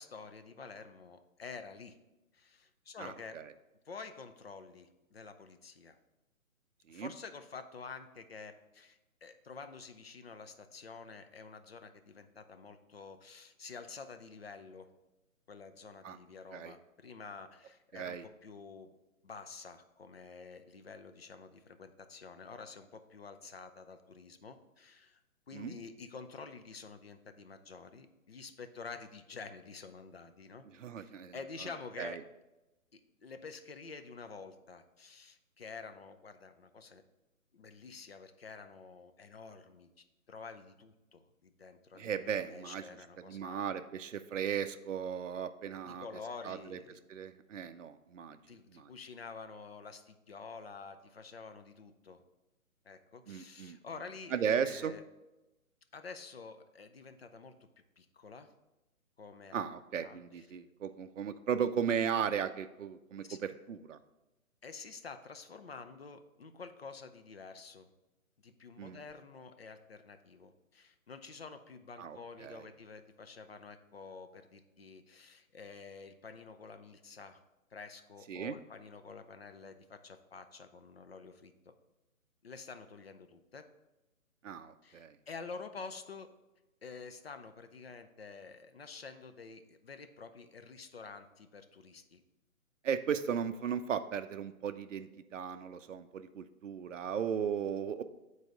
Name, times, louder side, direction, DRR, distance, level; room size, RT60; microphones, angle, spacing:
voice 1, 0.0-2.0 2.3-3.4 3.8-6.0 6.9-14.9 15.5-18.9 19.2-25.2 25.5-30.7 31.0-32.2 32.9-37.0 37.5-39.9 40.3-43.9 45.8-47.0 48.5-52.2 52.8-55.0 55.9-57.5 58.0-58.5 59.2-59.5 60.0-60.2 63.2-63.4 64.6-67.9 68.4-77.4 77.7-81.7 82.4-83.6 84.8-86.3 86.8-92.2, left 4 dB, 45° left, 9 dB, 0.5 m, -49 dB
voice 2, 3.0-3.5 6.9-7.1 16.0-16.2 16.5-16.7 17.9-18.2 25.5-25.8 30.8-31.3 31.6-31.7 32.0-32.2 42.0-42.8 43.3-46.1 46.4-46.8 47.1-48.4 48.7-48.9 53.3-53.8 54.3-54.9 59.5-64.0 68.8-69.0 72.0-72.7 78.3-78.5 84.4-85.2 92.8-98.0, right 7 dB, 60° right, 9 dB, 0.5 m, -36 dB
7.3 x 4.1 x 4.7 m, 1.0 s
figure-of-eight pair, 140°, 42 cm